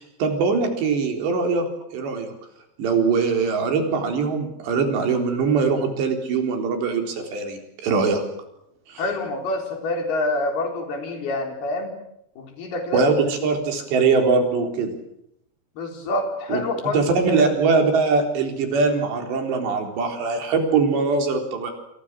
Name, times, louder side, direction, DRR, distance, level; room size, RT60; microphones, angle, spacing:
voice 1, 0.0-1.7 1.9-2.3 2.8-8.2 8.9-9.0 12.9-14.9 16.5-16.6 16.9-21.7, right 4 dB, 85° right, 4 dB, 6.1 m, -22 dB
voice 2, 9.0-11.9 12.4-13.1 15.8-17.4, left 2 dB, 65° left, 4 dB, 6.1 m, -27 dB
28.0 x 28.0 x 6.4 m, 0.80 s
omnidirectional pair, 4.9 m